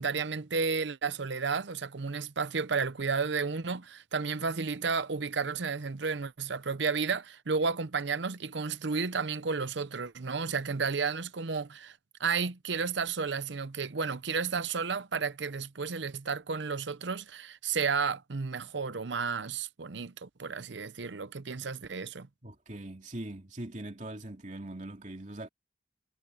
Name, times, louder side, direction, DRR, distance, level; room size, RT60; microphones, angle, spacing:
voice 1, 0.0-22.3, right 5 dB, 70° right, 0.8 m, -32 dB
voice 2, 22.4-25.5, right 1 dB, 40° right, 2.8 m, -41 dB
head